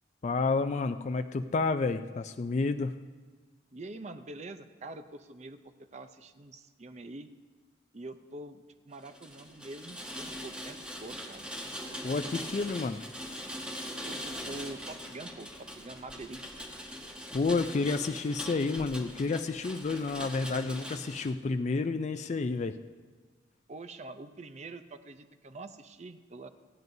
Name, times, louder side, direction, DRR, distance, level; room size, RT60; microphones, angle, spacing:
voice 1, 0.2-3.0 12.0-13.0 17.3-22.7, left 3 dB, 40° left, 8 dB, 0.3 m, -30 dB
voice 2, 3.7-7.3 7.9-11.5 14.0-16.7 23.7-26.5, right 2 dB, 35° right, 9 dB, 0.5 m, -45 dB
Rain, 9.0-21.3, equal, 5° right, 1.1 m, -42 dB
27.0 x 9.3 x 2.7 m, 1.4 s
head